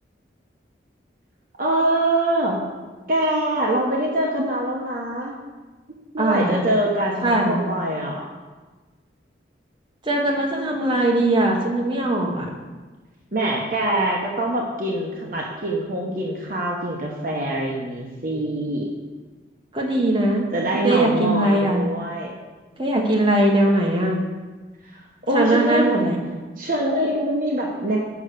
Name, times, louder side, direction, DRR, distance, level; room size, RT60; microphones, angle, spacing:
voice 1, 1.6-2.6 3.1-5.3 6.1-8.2 13.3-18.9 20.5-22.4 24.9-25.0 25.3-25.9 26.6-28.0, right 1 dB, 50° right, -2 dB, 1.0 m, -24 dB
voice 2, 6.2-6.6 7.2-7.6 10.0-12.5 19.7-21.8 22.8-24.2 25.3-26.2, right 1 dB, 25° right, -2 dB, 1.3 m, -20 dB
7.1 x 5.7 x 6.6 m, 1.3 s
head